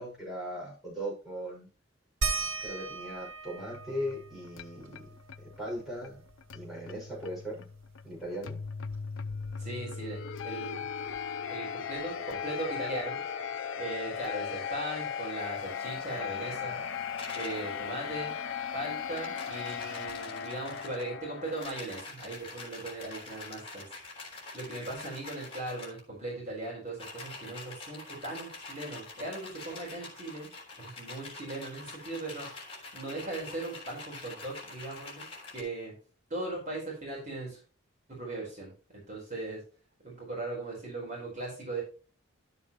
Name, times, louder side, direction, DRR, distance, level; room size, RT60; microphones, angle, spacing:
voice 1, 0.0-1.7 2.6-5.0 5.4-6.2 6.5-7.6 8.0-8.6, equal, ahead, -5 dB, 6.0 m, -38 dB
sound 1, 2.2-7.3 7.7-7.8 8.1-9.9 11.1-11.2 12.0-12.1, right 3 dB, 90° right, 1.9 m, -39 dB
sound 2, 3.6-21.6, left 7 dB, 80° left, 0.6 m, -38 dB
voice 2, 9.6-10.8 11.5-13.2 13.8-16.8 17.3-18.3 18.7-35.3 35.5-35.9 36.3-37.6 38.1-39.6 40.0-41.8, right 2 dB, 40° right, -2 dB, 4.6 m, -39 dB
sound 3, 17.2-17.7 18.8-21.1 21.4-26.0 26.9-35.6, left 3 dB, 30° left, 3.4 m, -45 dB
12.5 x 7.3 x 3.0 m, 0.36 s
head